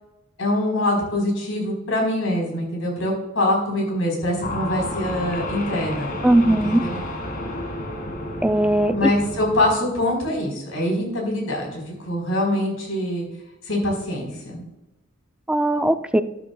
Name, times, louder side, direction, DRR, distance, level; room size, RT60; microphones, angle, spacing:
voice 1, 0.4-6.1 6.5-7.0 9.0-13.3 13.6-14.6, left 1 dB, 85° left, 0 dB, 4.0 m, -24 dB
sound 1, 4.4-9.7, left 1 dB, 45° left, 1.9 m, -31 dB
voice 2, 6.2-6.8 8.4-9.1 15.5-16.2, right 1 dB, 5° right, 9 dB, 0.4 m, -19 dB
12.5 x 12.0 x 2.3 m, 0.95 s
head